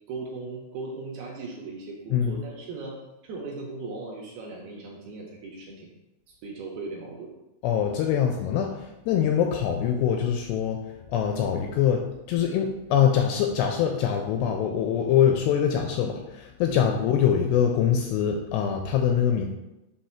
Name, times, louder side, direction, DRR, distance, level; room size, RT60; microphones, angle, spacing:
voice 1, 0.1-3.0 3.2-5.9 6.4-7.3 16.7-16.9, right 3 dB, 75° right, -1 dB, 2.4 m, -38 dB
voice 2, 2.1-2.4 7.6-10.8 11.1-19.5, left 8 dB, 85° left, 3 dB, 2.3 m, -24 dB
6.6 x 2.7 x 5.7 m, 0.94 s
omnidirectional pair, 5.1 m